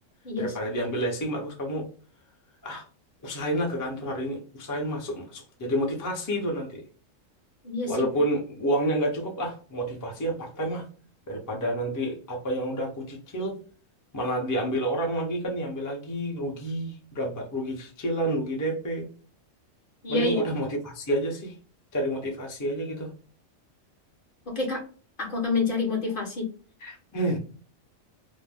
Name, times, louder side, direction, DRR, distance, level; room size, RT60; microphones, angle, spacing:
voice 1, 0.4-1.9 2.6-2.8 3.2-6.8 7.9-10.8 11.3-13.5 14.1-19.1 20.1-21.5 21.9-23.1 26.8-27.4, right 1 dB, 25° left, 0 dB, 0.5 m, -29 dB
voice 2, 20.0-20.5 24.5-24.8 25.2-26.5, left 3 dB, 45° left, 0 dB, 0.9 m, -27 dB
2.6 x 2.0 x 3.4 m, 0.40 s
omnidirectional pair, 1.4 m